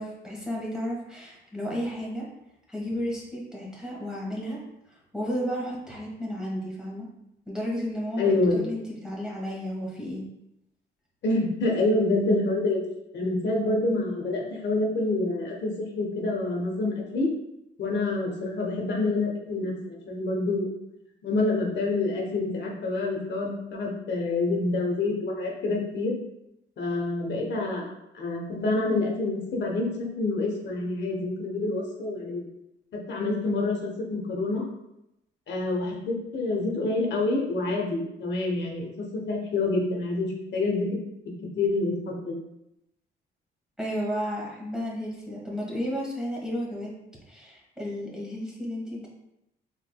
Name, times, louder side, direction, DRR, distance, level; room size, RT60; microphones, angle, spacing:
voice 1, 0.0-2.3 2.7-4.6 4.9-7.1 7.5-10.2 43.8-46.9 47.3-49.1, equal, 5° right, -4 dB, 1.5 m, -33 dB
voice 2, 8.2-8.6 11.2-12.8 13.1-17.3 17.8-20.7 21.2-26.1 26.8-27.9 28.1-29.9 30.2-32.4 33.1-34.6 35.5-38.9 39.1-40.9 41.6-42.4, left 2 dB, 65° left, -1 dB, 0.9 m, -27 dB
4.8 x 3.7 x 2.2 m, 0.85 s
cardioid pair, 90°, 20 cm